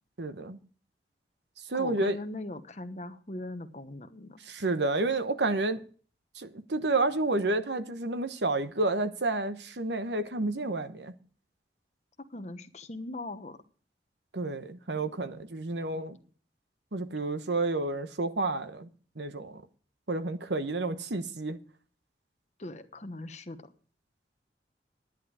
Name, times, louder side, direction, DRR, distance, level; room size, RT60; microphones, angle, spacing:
voice 1, 0.2-0.6 1.7-2.2 4.5-5.8 6.4-11.1 14.3-16.2 16.9-18.9 19.2-19.6 20.1-21.6, right 2 dB, 80° right, 1.1 m, -30 dB
voice 2, 1.7-4.4 12.3-13.6 22.6-23.7, left 2 dB, 40° left, 1.1 m, -40 dB
11.0 x 10.5 x 4.8 m
head